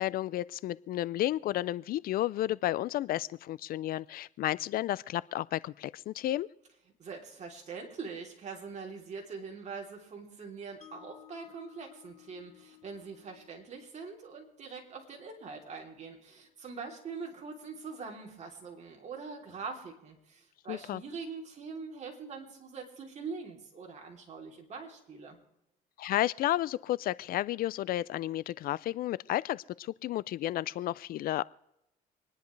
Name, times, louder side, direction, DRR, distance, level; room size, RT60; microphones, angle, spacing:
voice 1, 0.0-6.5 20.7-21.0 26.0-31.4, left 14 dB, 60° left, 20 dB, 0.4 m, -32 dB
voice 2, 7.0-25.4, right 5 dB, 45° right, 1 dB, 3.2 m, -43 dB
Mallet percussion, 10.8-17.0, left 15 dB, 40° left, 1.1 m, -59 dB
26.5 x 10.5 x 3.3 m, 0.85 s
cardioid pair, 110°, 17 cm